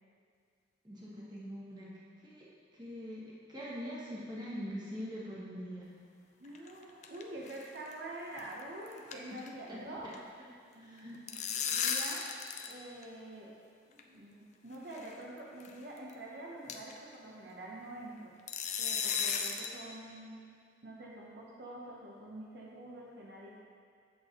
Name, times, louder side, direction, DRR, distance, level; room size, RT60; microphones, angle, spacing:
voice 1, 0.8-1.9 2.2-2.5 2.7-5.9 9.3-9.4 9.7-9.8 10.0-10.1 10.8-11.5, equal, 25° right, -6 dB, 1.4 m, -43 dB
sound 1, 6.4-7.2 7.5-7.6 7.9-8.0 8.4-8.6 8.9-10.2 11.0-12.8 13.0-13.1 14.0-14.1 14.9-15.1 15.6-15.7 16.1-16.2 16.7-17.0 18.5-19.8, left 7 dB, 40° left, 0.5 m, -35 dB
voice 2, 6.4-10.1 10.7-13.5 13.9-18.3 18.8-20.5 20.8-23.6, right 1 dB, 60° right, -4 dB, 0.9 m, -46 dB
8.4 x 7.7 x 3.0 m, 2.2 s
head